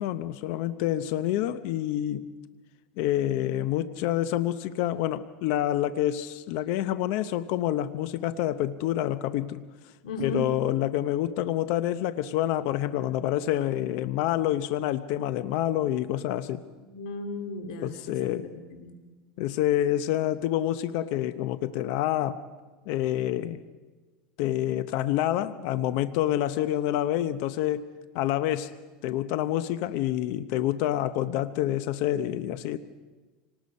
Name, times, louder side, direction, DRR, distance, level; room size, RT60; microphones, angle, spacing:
voice 1, 0.0-2.3 3.0-9.6 10.2-16.6 17.8-18.5 19.4-22.4 22.9-23.6 24.4-27.9 28.1-28.7 29.0-32.8, left 13 dB, 60° left, 12 dB, 0.7 m, -27 dB
voice 2, 10.0-10.5 16.8-19.0, left 1 dB, 90° left, 6 dB, 2.4 m, -36 dB
26.0 x 19.0 x 5.4 m, 1.3 s
supercardioid pair, 140°, 4 cm